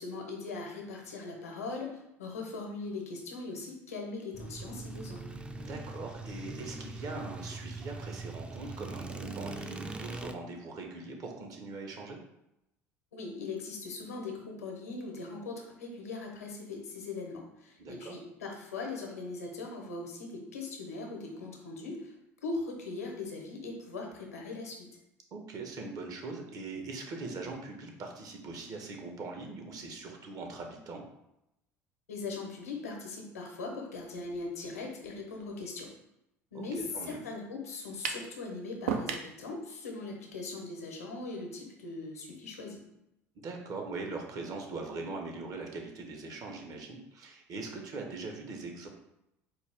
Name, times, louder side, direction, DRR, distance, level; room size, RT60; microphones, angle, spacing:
voice 1, 0.0-5.2 13.1-22.1 22.4-24.9 32.1-35.9 36.5-42.8, left 3 dB, 85° left, 2 dB, 0.8 m, -40 dB
sound 1, 4.3-10.3, right 3 dB, 15° right, 0.4 m, -41 dB
voice 2, 5.6-12.2 17.8-18.1 25.3-31.0 36.5-36.7 36.9-37.2 43.3-48.9, right 3 dB, 50° right, 2 dB, 0.9 m, -41 dB
sound 2, 38.0-38.3 38.9-39.3, right 6 dB, 80° right, 0.4 m, -32 dB
4.4 x 2.4 x 3.4 m, 0.85 s
hypercardioid pair, 65°, 8 cm